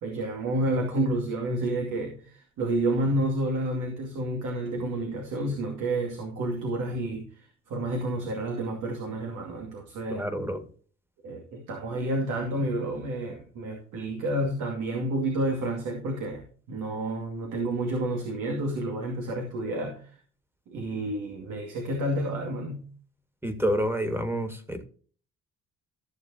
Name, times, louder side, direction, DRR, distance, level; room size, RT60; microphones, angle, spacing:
voice 1, 0.0-7.3 7.7-10.2 11.2-20.0 20.7-22.9, right 1 dB, 80° right, 1 dB, 2.5 m, -30 dB
voice 2, 10.1-10.6 23.4-24.8, equal, 10° right, 9 dB, 1.9 m, -28 dB
14.5 x 6.9 x 2.8 m, 0.43 s
cardioid pair, 90°, 30 cm